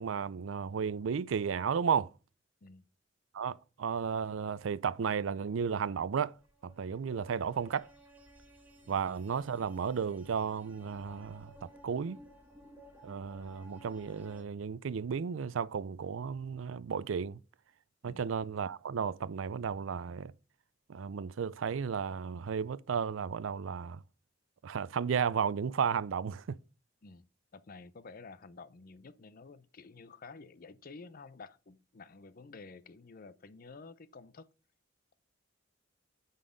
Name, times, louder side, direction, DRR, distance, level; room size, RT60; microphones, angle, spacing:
voice 1, 0.0-2.1 3.3-6.4 6.6-7.9 8.9-12.2 13.0-17.4 18.0-20.3 20.9-24.0 24.6-26.6, right 6 dB, 85° right, 0.4 m, -33 dB
sound 1, 6.3-14.4, right 1 dB, 10° right, 1.8 m, -57 dB
voice 2, 27.5-34.5, left 4 dB, 50° left, 0.6 m, -51 dB
9.2 x 4.1 x 5.1 m
head